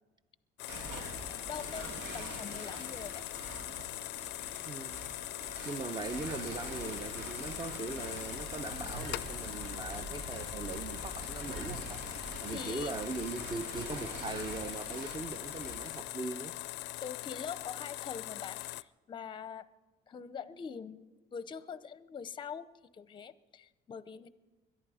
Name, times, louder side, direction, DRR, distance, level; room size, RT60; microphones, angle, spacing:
sound 1, 0.6-18.8, left 18 dB, 80° left, 0.4 m, -41 dB
sound 2, 0.7-16.0, right 3 dB, 85° right, 2.0 m, -45 dB
voice 1, 1.1-1.9 2.1-3.3 12.5-12.9 17.0-19.7 20.1-22.7 22.9-24.3, left 7 dB, 25° left, 0.6 m, -43 dB
voice 2, 4.6-5.1 5.6-12.0 12.4-16.6, right 3 dB, 25° right, 0.7 m, -40 dB
22.0 x 11.0 x 4.9 m
cardioid pair, 130°, 18 cm